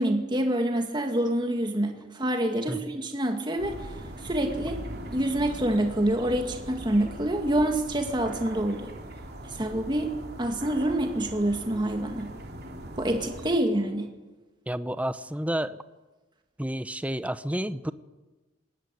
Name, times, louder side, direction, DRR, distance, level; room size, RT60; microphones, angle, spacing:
voice 1, 0.0-4.8 5.1-8.9 9.5-12.3 13.0-14.1, right 1 dB, 25° right, 4 dB, 2.1 m, -27 dB
sound 1, 3.6-13.6, right 1 dB, 55° right, 3.0 m, -40 dB
voice 2, 14.7-15.8 16.6-17.9, right 1 dB, 5° right, 13 dB, 0.8 m, -30 dB
21.0 x 18.0 x 9.5 m, 1.2 s
head